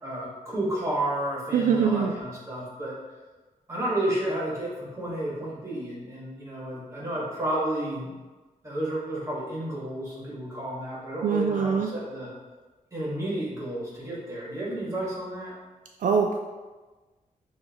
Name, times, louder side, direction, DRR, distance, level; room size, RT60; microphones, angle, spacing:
voice 1, 0.0-2.9 3.7-8.1 8.6-12.3 12.9-15.5, right 1 dB, 20° right, -6 dB, 1.5 m, -31 dB
voice 2, 1.5-2.1 11.2-11.9 16.0-16.4, right 6 dB, 75° right, 2 dB, 0.4 m, -23 dB
6.5 x 2.8 x 2.9 m, 1.3 s
wide cardioid pair, 130°, 14 cm